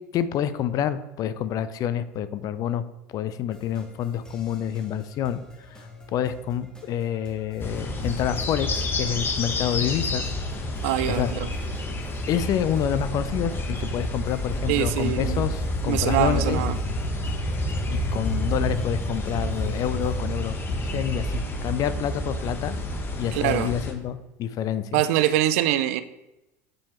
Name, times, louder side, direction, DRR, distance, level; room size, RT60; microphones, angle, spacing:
voice 1, 0.1-2.8 3.1-5.4 6.1-10.2 11.1-11.3 11.9-12.0 12.3-16.6 17.9-20.6 20.8-22.7 23.2-25.0, left 9 dB, 50° left, 13 dB, 0.5 m, -28 dB
sound 1, 3.5-20.2, left 2 dB, 10° left, 1.6 m, -48 dB
sound 2, 7.6-23.9, left 1 dB, 25° left, 1.0 m, -29 dB
voice 2, 10.8-11.5 14.7-15.4 15.9-16.8 23.3-23.7 24.9-26.0, right 13 dB, 75° right, 13 dB, 0.4 m, -24 dB
7.6 x 4.4 x 3.0 m, 0.97 s
hypercardioid pair, 90°, 8 cm